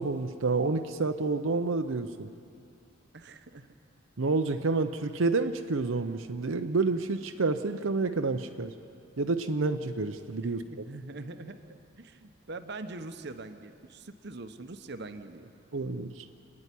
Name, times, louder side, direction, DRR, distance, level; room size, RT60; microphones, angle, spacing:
voice 1, 0.0-2.3 4.2-8.7 9.2-10.6 15.7-16.3, right 3 dB, 85° right, 7 dB, 0.7 m, -29 dB
voice 2, 3.1-3.7 10.4-15.5, right 2 dB, 55° right, 9 dB, 0.9 m, -43 dB
28.0 x 9.7 x 10.0 m, 2.4 s
head